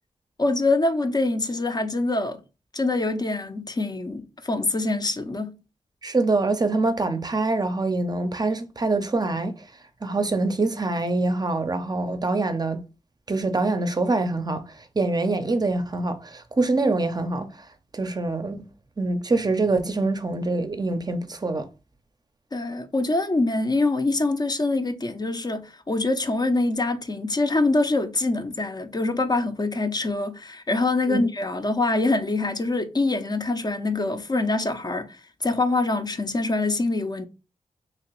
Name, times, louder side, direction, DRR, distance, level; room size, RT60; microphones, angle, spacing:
voice 1, 0.4-2.4 2.7-5.5 22.5-37.3, left 2 dB, 35° left, 0.5 m, -24 dB
voice 2, 6.0-9.6 10.0-12.8 13.3-14.6 15.0-17.5 17.9-18.7 19.0-21.7 31.1-31.2, right 2 dB, 35° right, 0.5 m, -24 dB
2.9 x 2.8 x 3.0 m
cardioid pair, 55°, 12 cm